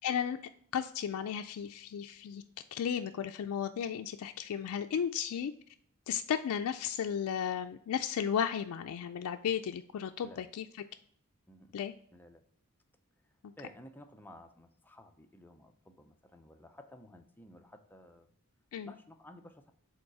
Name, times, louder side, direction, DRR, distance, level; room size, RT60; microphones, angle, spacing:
voice 1, 0.0-0.4 0.7-2.4 2.7-5.5 6.1-10.7 11.7-11.9 13.4-13.5 18.7-18.9, left 8 dB, 70° left, 6 dB, 0.3 m, -34 dB
voice 2, 12.1-12.4 13.2-18.3 18.9-19.7, left 1 dB, 10° left, 6 dB, 0.5 m, -54 dB
5.1 x 3.9 x 4.7 m, 0.64 s
head